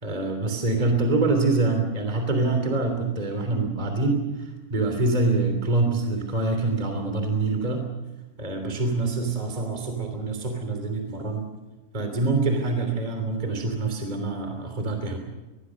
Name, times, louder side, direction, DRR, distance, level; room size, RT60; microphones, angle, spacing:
voice 1, 0.0-7.8 8.4-11.5 11.9-15.2, right 3 dB, 15° right, 4 dB, 1.5 m, -25 dB
24.5 x 21.0 x 6.3 m, 1.1 s
omnidirectional pair, 6.0 m